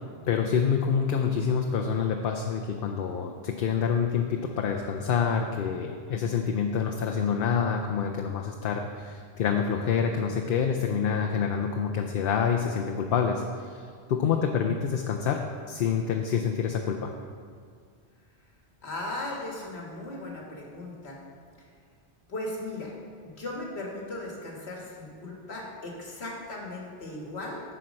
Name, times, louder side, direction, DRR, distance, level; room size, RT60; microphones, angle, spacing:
voice 1, 0.3-13.4 13.7-15.4 15.7-17.1, left 7 dB, 65° left, 2 dB, 0.7 m, -27 dB
voice 2, 18.8-21.2 22.3-22.9 23.2-27.6, left 2 dB, 80° left, -2 dB, 1.8 m, -37 dB
9.9 x 4.5 x 6.3 m, 2.1 s
omnidirectional pair, 1.1 m